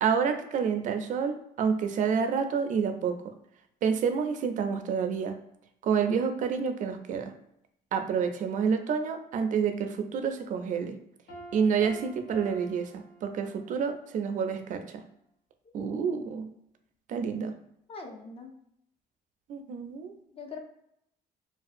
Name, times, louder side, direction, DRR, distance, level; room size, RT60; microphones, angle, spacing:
voice 1, 0.0-3.2 3.8-5.3 5.8-7.3 7.9-11.0 11.5-15.0 15.7-16.5 17.1-17.5 19.5-20.1, right 6 dB, 50° right, 7 dB, 0.4 m, -28 dB
Piano, 11.3-13.8, right 2 dB, 70° left, 0.7 m, -47 dB
voice 2, 15.6-16.3 17.9-18.5 20.3-20.6, left 4 dB, 35° left, 3 dB, 0.5 m, -43 dB
2.5 x 2.3 x 2.4 m, 0.75 s
cardioid pair, 110°, 17 cm